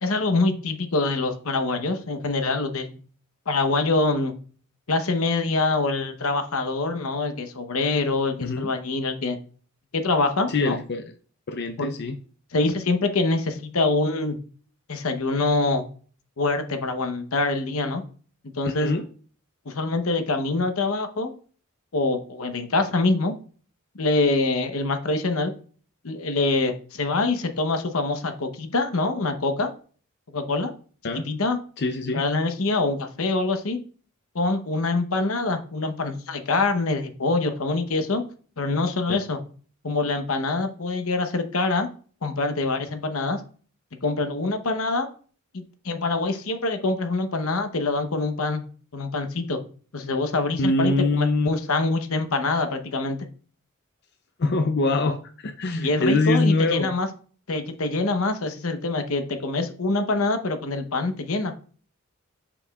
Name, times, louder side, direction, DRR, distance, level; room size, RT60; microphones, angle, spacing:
voice 1, 0.0-3.0 3.5-4.3 4.9-9.4 9.9-10.8 11.8-11.9 12.5-14.4 14.9-15.8 16.4-18.0 18.6-18.9 19.7-21.3 21.9-23.3 24.0-25.5 26.0-29.7 30.3-30.7 31.1-31.6 32.1-33.8 34.3-38.3 38.6-39.4 39.8-41.9 42.2-43.4 44.0-45.1 45.5-48.6 48.9-49.6 49.9-53.3 55.8-57.1 57.5-61.5, left 3 dB, 80° left, 7 dB, 0.9 m, -25 dB
voice 2, 10.5-11.1 11.5-12.2 18.6-19.1 31.0-31.3 31.8-32.2 50.6-51.5 54.4-56.9, left 2 dB, 50° left, 7 dB, 0.6 m, -24 dB
7.1 x 6.9 x 2.3 m, 0.41 s
head